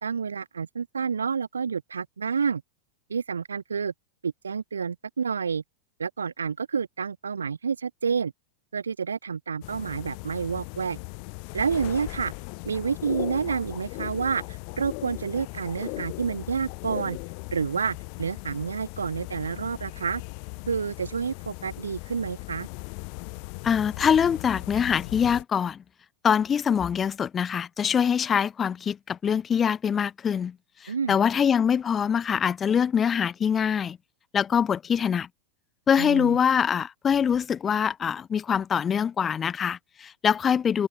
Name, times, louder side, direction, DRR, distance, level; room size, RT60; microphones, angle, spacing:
voice 1, 0.0-2.6 3.1-3.9 4.2-5.6 6.0-8.3 8.7-11.0 11.5-12.3 12.6-17.2 17.5-20.2 20.7-22.7 30.9-31.2 36.0-36.4, right 6 dB, 70° right, 1.6 m, -29 dB
sound 1, 9.6-25.4, left 40 dB or more, 45° left, 4.3 m, -38 dB
voice 2, 23.6-25.8 26.2-30.6 30.8-34.0 34.3-35.3 35.9-40.9, left 7 dB, 20° left, 2.3 m, -24 dB
figure-of-eight pair, 90°, 0 cm